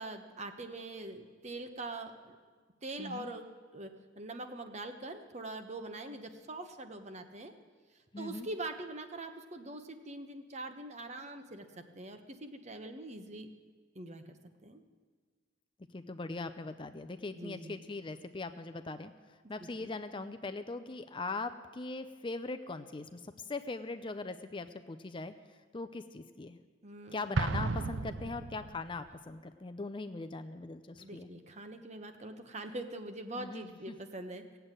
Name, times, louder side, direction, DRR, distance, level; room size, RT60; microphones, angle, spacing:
voice 1, 0.0-2.4 2.8-3.4 3.7-3.9 4.2-7.5 8.2-13.5 13.9-14.2 14.6-14.8 17.3-17.7 19.6-19.9 26.8-27.3 31.0-34.6, right 2 dB, 35° right, 7 dB, 1.1 m, -43 dB
voice 2, 8.1-8.5 15.9-26.6 27.1-31.3 33.4-34.0, left 3 dB, 25° left, 10 dB, 0.5 m, -41 dB
Explosion, 27.4-29.0, right 3 dB, 80° right, 0.6 m, -34 dB
17.0 x 8.0 x 9.0 m, 1.5 s
head